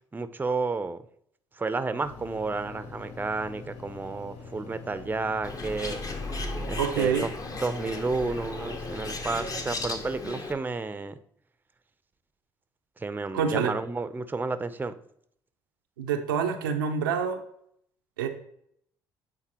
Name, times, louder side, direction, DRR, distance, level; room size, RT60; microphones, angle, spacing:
voice 1, 0.1-1.0 1.6-6.0 6.7-7.3 7.6-11.2 13.0-14.9, right 3 dB, 15° right, 13 dB, 0.5 m, -31 dB
sound 1, 2.0-10.0, left 4 dB, 65° left, 0.7 m, -44 dB
Bird, 5.4-10.5, left 2 dB, 35° left, 0.9 m, -35 dB
voice 2, 6.8-7.2 13.3-13.7 16.0-17.4 18.2-18.3, right 7 dB, 90° right, 4 dB, 0.5 m, -26 dB
8.8 x 3.8 x 2.9 m, 0.69 s
hypercardioid pair, 50°, 11 cm